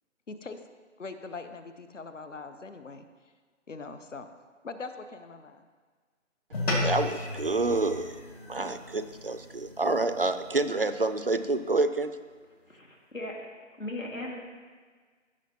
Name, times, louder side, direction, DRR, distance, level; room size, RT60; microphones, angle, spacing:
voice 1, 0.3-0.6 1.0-3.1 3.7-4.3 4.6-5.6, left 4 dB, 70° left, 9 dB, 0.9 m, -41 dB
sound 1, 6.5-11.2, left 2 dB, 50° left, 2.5 m, -35 dB
voice 2, 6.8-8.2 8.5-12.1, right 2 dB, 45° right, 10 dB, 0.4 m, -28 dB
voice 3, 12.7-13.5 13.8-14.4, left 1 dB, 85° left, 0 dB, 2.0 m, -37 dB
15.0 x 6.3 x 2.9 m, 1.5 s
figure-of-eight pair, 150°, 39 cm